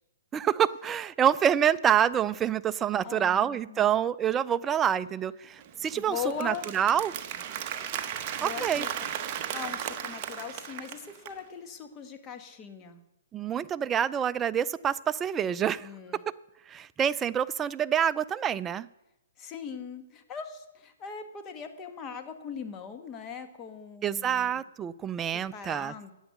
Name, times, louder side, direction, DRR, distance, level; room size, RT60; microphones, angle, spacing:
voice 1, 0.3-7.1 8.4-8.8 13.3-16.2 16.7-18.9 24.0-26.1, right 9 dB, 15° right, 14 dB, 0.3 m, -27 dB
voice 2, 3.0-3.9 6.0-6.7 8.4-9.1 9.5-13.0 15.8-16.2 19.4-24.6 25.5-26.1, left 6 dB, 20° left, 7 dB, 1.3 m, -40 dB
Applause, 5.6-11.4, right 9 dB, 35° right, 1.0 m, -36 dB
10.0 x 8.0 x 8.1 m, 0.94 s
hypercardioid pair, 150°, 0 cm